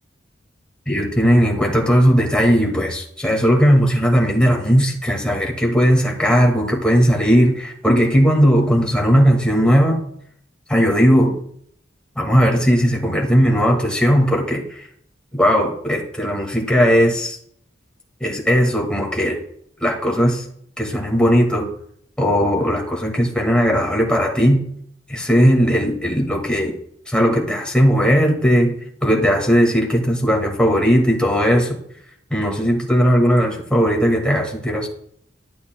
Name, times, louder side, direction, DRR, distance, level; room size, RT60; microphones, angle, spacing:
voice 1, 0.9-10.0 10.7-11.3 12.2-14.9 15.3-17.4 18.2-19.4 19.8-20.5 20.8-21.7 22.2-24.6 25.1-26.8 27.1-31.8 32.3-34.9, equal, 5° left, -1 dB, 1.9 m, -17 dB
12.5 x 8.5 x 2.2 m, 0.68 s
head